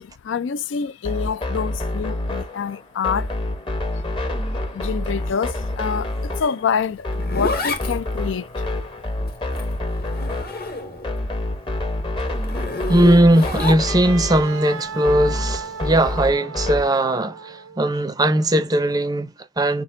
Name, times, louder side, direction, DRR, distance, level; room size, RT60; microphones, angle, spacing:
voice 1, 0.0-3.3 3.9-8.6, left 6 dB, 65° left, 0.4 m, -27 dB
sound 1, 1.0-17.0, left 1 dB, 25° left, 0.8 m, -27 dB
Zipper (clothing), 6.7-11.2 11.6-14.2 15.8-16.1, left 2 dB, 50° left, 1.1 m, -30 dB
voice 2, 12.9-19.8, right 1 dB, 20° right, 0.5 m, -19 dB
Wind instrument woodwind instrument, 13.9-17.9, right 5 dB, 90° right, 0.5 m, -35 dB
5.6 x 2.5 x 3.7 m
head